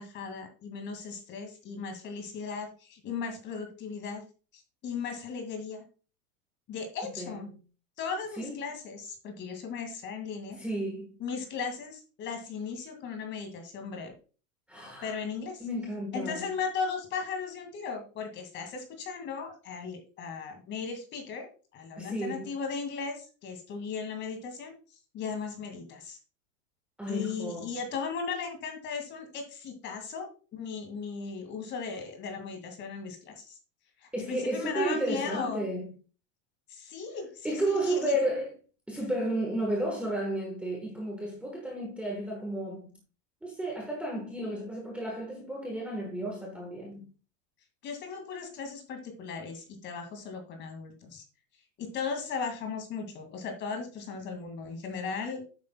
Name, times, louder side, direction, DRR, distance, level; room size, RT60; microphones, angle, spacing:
voice 1, 0.0-4.2 4.5-5.8 6.7-7.5 8.0-10.6 11.2-14.1 15.0-15.6 16.1-21.5 21.7-26.2 27.1-33.6 34.0-35.7 36.7-38.2 47.8-51.2 51.8-55.4, left 5 dB, 30° left, 2.1 m, -37 dB
voice 2, 10.5-11.1 14.7-15.2 15.6-16.4 22.0-22.5 27.0-27.7 34.1-35.9 37.4-38.5 38.9-42.9 43.4-47.1, right 1 dB, 5° right, 1.3 m, -32 dB
10.5 x 8.5 x 2.2 m
supercardioid pair, 160°, 39 cm